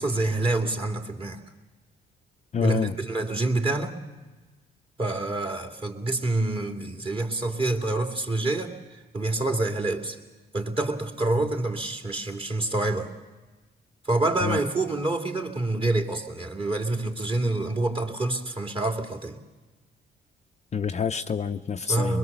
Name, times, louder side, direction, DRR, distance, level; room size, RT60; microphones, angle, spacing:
voice 1, 0.0-1.4 2.6-4.0 5.0-10.2 10.5-13.1 14.0-19.4 21.9-22.2, right 2 dB, 30° right, 2 dB, 2.7 m, -27 dB
voice 2, 2.5-2.9 14.4-14.6 20.7-22.2, left 6 dB, 35° left, 7 dB, 0.6 m, -27 dB
23.5 x 21.5 x 6.8 m, 1.2 s
cardioid pair, 90°, 20 cm